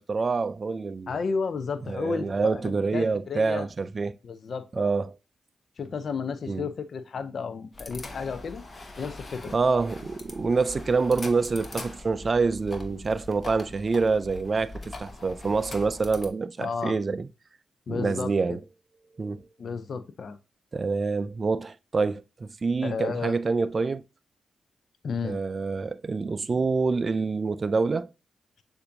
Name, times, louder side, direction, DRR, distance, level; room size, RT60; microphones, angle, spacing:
voice 1, 0.0-1.2 1.9-4.2 4.7-5.2 6.5-6.7 9.5-17.3 17.9-18.6 19.2-19.5 20.7-24.0 25.2-28.1, right 4 dB, 45° right, 0.3 m, -26 dB
voice 2, 1.1-3.7 4.2-5.0 5.8-8.6 9.0-9.6 16.6-17.0 17.9-18.6 19.6-20.4 22.8-23.3 25.0-25.4, left 5 dB, 65° left, 0.4 m, -32 dB
Mouse PC, 7.7-16.3, left 2 dB, 45° left, 1.1 m, -42 dB
6.7 x 2.6 x 2.6 m
supercardioid pair, 50°, 0 cm